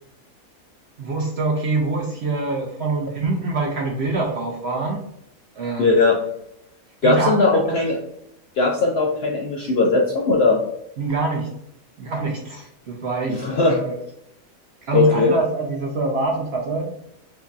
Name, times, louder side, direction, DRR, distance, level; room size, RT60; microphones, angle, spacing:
voice 1, 1.0-5.0 5.6-6.0 7.0-7.8 11.0-11.5 12.0-13.9 14.8-16.9, right 3 dB, 65° right, 1 dB, 0.7 m, -25 dB
voice 2, 5.8-6.2 7.0-8.0 8.6-10.6 13.3-13.8 14.9-15.3, left 3 dB, 70° left, 1 dB, 0.6 m, -18 dB
4.4 x 2.7 x 2.3 m, 0.77 s
omnidirectional pair, 1.5 m